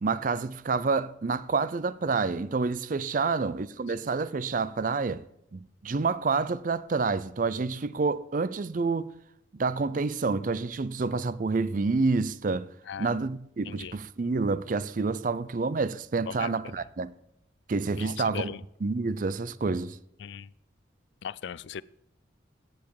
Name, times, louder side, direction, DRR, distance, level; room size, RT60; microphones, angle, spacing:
voice 1, 0.0-5.2 5.5-9.1 9.5-12.7 13.0-17.1 17.7-18.5 18.8-20.0, right 4 dB, 45° right, 0.4 m, -28 dB
voice 2, 3.2-3.5 3.9-4.0 12.9-13.1 13.6-14.0 16.3-16.9 18.0-18.6 20.2-20.5 21.2-21.8, left 7 dB, 65° left, 0.4 m, -39 dB
14.0 x 9.2 x 4.8 m
head